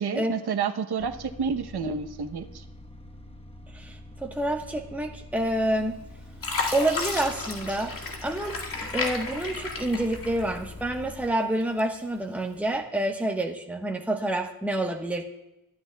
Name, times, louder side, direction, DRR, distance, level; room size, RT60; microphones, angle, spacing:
voice 1, 0.0-2.6, right 6 dB, 75° right, 6 dB, 0.9 m, -29 dB
sound 1, 1.0-11.3, left 2 dB, 15° left, 1.1 m, -45 dB
voice 2, 3.7-6.0 6.7-7.9 8.2-8.6 8.9-15.3, right 1 dB, 5° right, 2 dB, 1.1 m, -28 dB
Fill (with liquid), 5.7-6.0 6.4-10.8 11.2-12.1 12.6-12.8, left 3 dB, 55° left, 2.1 m, -33 dB
23.0 x 12.0 x 2.3 m, 0.92 s
wide cardioid pair, 125°, 39 cm